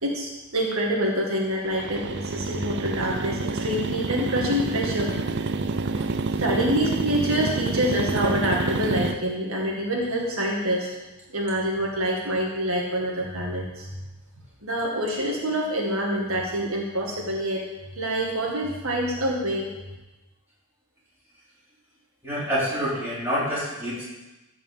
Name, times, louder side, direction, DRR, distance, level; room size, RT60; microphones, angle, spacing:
voice 1, 0.0-5.1 5.6-6.0 6.4-10.9 11.3-13.9 14.6-17.6 17.9-19.7, equal, 65° right, -2 dB, 2.0 m, -26 dB
sound 1, 1.7-9.1, right 3 dB, 50° right, 0.5 m, -28 dB
voice 2, 22.2-24.0, equal, 10° right, -9 dB, 4.2 m, -27 dB
14.5 x 5.3 x 7.2 m, 1.1 s
head